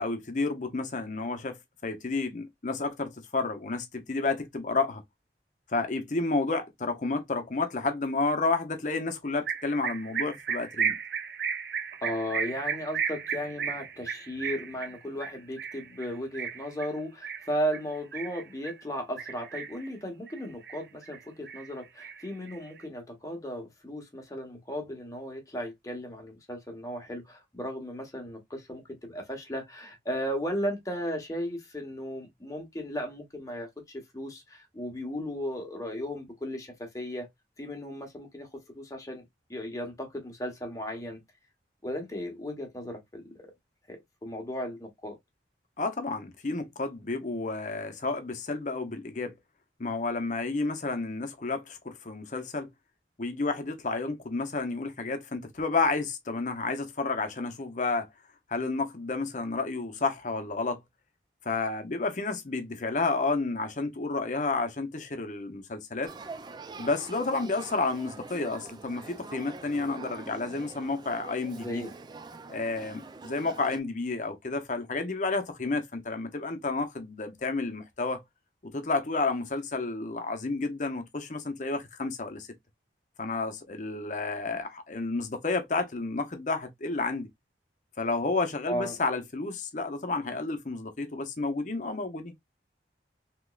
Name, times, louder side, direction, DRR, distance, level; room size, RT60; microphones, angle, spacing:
voice 1, 0.0-5.0 5.7-11.0 45.8-49.3 49.8-52.7 53.2-58.1 58.5-60.8 61.4-66.1 66.8-71.8 72.5-78.2 78.6-82.5 83.2-87.3 88.0-92.3, left 3 dB, 45° left, 0.7 m, -31 dB
sound 1, 9.5-18.8 19.2-19.9 20.3-21.2 21.5-22.8, right 7 dB, 65° right, 0.6 m, -34 dB
voice 2, 12.0-37.3 37.6-38.5 38.7-39.2 39.5-41.2 41.8-43.3 43.9-45.1 71.6-71.9 88.7-89.0, equal, 20° left, 1.1 m, -35 dB
Male speech man speaking / Child speech kid speaking / Conversation, 66.0-73.8, right 3 dB, 25° right, 0.3 m, -45 dB
3.5 x 2.9 x 2.3 m
head